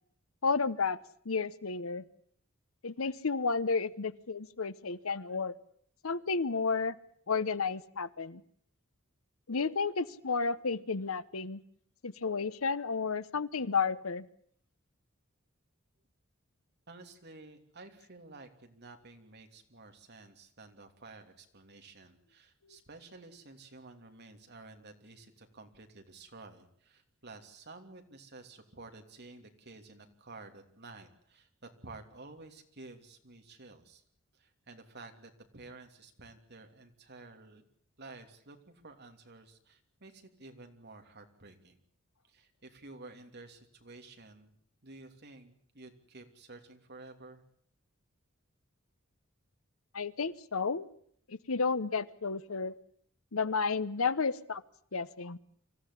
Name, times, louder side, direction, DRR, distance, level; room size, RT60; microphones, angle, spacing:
voice 1, 0.4-1.0 1.2-2.0 2.8-5.5 6.0-7.0 7.3-8.4 9.5-11.6 12.0-14.2 49.9-50.9 51.3-52.7 53.3-54.6 54.9-55.4, left 4 dB, 85° left, 16 dB, 1.0 m, -32 dB
voice 2, 16.9-34.0 34.3-37.7 38.0-41.8 42.3-44.5 44.8-47.4, right 3 dB, 55° right, 5 dB, 3.1 m, -52 dB
25.0 x 15.0 x 10.0 m, 0.64 s
head